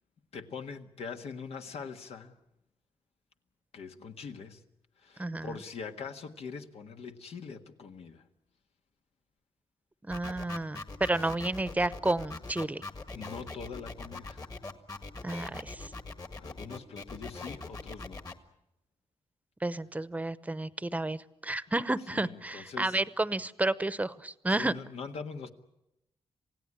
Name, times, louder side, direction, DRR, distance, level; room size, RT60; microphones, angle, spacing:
voice 1, 0.3-2.4 3.7-4.6 5.0-8.3 13.1-14.5 16.4-18.2 22.1-23.0 24.6-25.5, left 5 dB, 85° left, 1.6 m, -43 dB
voice 2, 5.2-5.5 10.1-12.8 15.2-15.9 19.6-24.7, right 2 dB, 15° right, 0.8 m, -31 dB
sound 1, 10.1-18.3, left 3 dB, 35° left, 1.8 m, -42 dB
27.5 x 17.0 x 9.9 m
cardioid pair, 100°, 10 cm